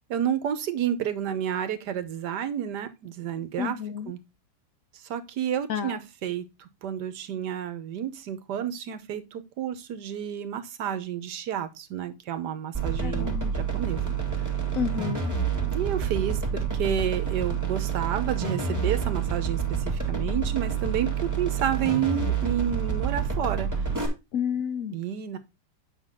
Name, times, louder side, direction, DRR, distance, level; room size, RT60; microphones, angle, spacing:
voice 1, 0.1-3.8 4.1-4.2 5.1-13.4 13.7-14.1 15.7-23.7 24.9-25.4, right 9 dB, 80° right, 1.5 m, -30 dB
voice 2, 3.6-4.1 5.7-5.9 13.0-13.5 14.7-15.3 24.3-25.0, left 8 dB, 70° left, 0.8 m, -30 dB
sound 1, 12.7-24.1, right 6 dB, 10° right, 1.8 m, -28 dB
8.4 x 5.8 x 3.6 m
omnidirectional pair, 1.8 m